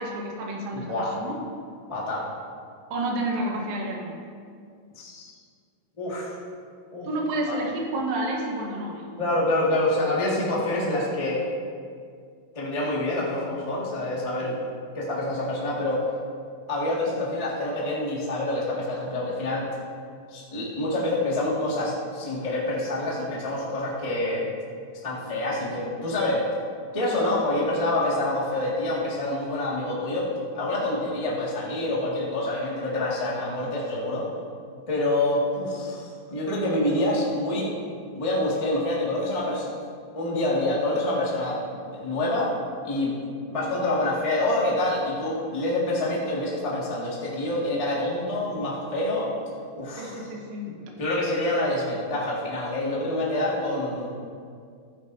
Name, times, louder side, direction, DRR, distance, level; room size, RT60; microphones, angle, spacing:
voice 1, 0.0-1.4 2.9-4.2 7.0-9.1 14.4-14.5 25.2-25.3 27.1-27.5 50.0-50.7, right 1 dB, 70° right, -1 dB, 2.9 m, -30 dB
voice 2, 0.7-1.2 1.9-2.3 4.9-5.3 6.0-6.3 6.9-7.1 7.5-7.6 9.2-11.4 12.5-14.6 14.9-16.0 16.7-19.7 20.3-24.5 25.0-26.5 26.9-34.3 34.9-37.7 38.1-39.7 40.1-42.5 42.8-43.1 43.5-49.3 49.8-50.2 51.0-54.1, left 1 dB, 35° left, -6 dB, 0.5 m, -27 dB
14.0 x 10.0 x 2.7 m, 2.2 s
omnidirectional pair, 4.3 m